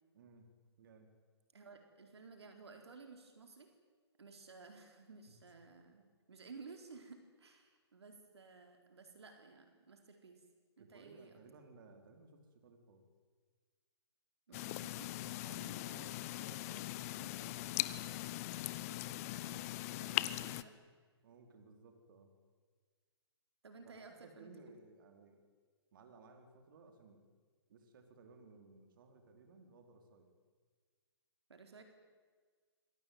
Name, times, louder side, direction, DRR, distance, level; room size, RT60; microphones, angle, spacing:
voice 1, 0.1-0.5 0.8-1.1 5.3-5.4 10.8-13.0 14.5-14.7 15.2-17.9 20.0-20.6 21.2-22.3 23.8-25.5 25.9-27.2 27.7-30.3, right 3 dB, 50° right, 5 dB, 4.4 m, -60 dB
voice 2, 1.5-3.7 4.2-10.4 10.8-11.4 14.5-15.1 18.9-20.7 23.6-24.8 31.5-31.8, right 4 dB, 75° right, 5 dB, 4.1 m, -56 dB
sound 1, 14.5-20.6, left 16 dB, 35° left, 1.1 m, -40 dB
27.0 x 22.5 x 9.5 m, 1.5 s
figure-of-eight pair, 130°, 14 cm